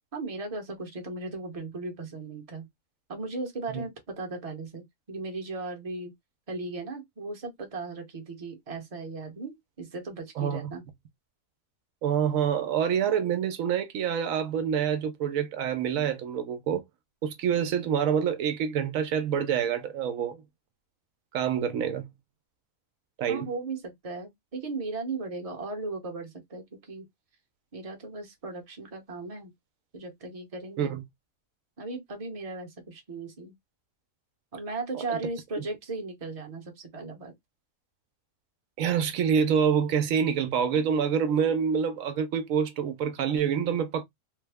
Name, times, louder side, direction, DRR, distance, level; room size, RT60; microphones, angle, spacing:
voice 1, 0.1-2.7 3.1-6.1 6.5-10.8 23.3-27.1 27.7-29.5 29.9-31.0 31.8-33.5 34.5-37.3, right 3 dB, 30° right, 0.9 m, -37 dB
voice 2, 10.4-10.7 12.0-16.8 17.2-20.4 21.3-22.1 23.2-23.5 30.8-31.0 35.1-35.2 35.6-35.7 38.8-44.0, right 7 dB, 80° right, 1.0 m, -26 dB
3.3 x 2.0 x 3.4 m
omnidirectional pair, 1.4 m